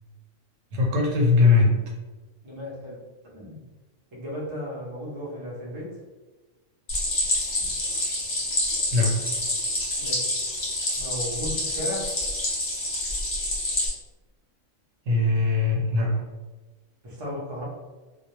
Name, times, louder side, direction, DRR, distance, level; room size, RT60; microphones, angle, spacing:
voice 1, 0.7-1.8 8.9-9.2 15.1-16.1, left 3 dB, 80° right, -1 dB, 1.0 m, -20 dB
voice 2, 2.4-3.6 4.1-6.0 10.0-10.3 11.0-12.1 17.0-17.6, left 1 dB, 35° right, -5 dB, 0.4 m, -35 dB
Stream, 6.9-13.9, left 1 dB, 40° left, 0.7 m, -27 dB
2.2 x 2.1 x 2.9 m, 1.2 s
omnidirectional pair, 1.3 m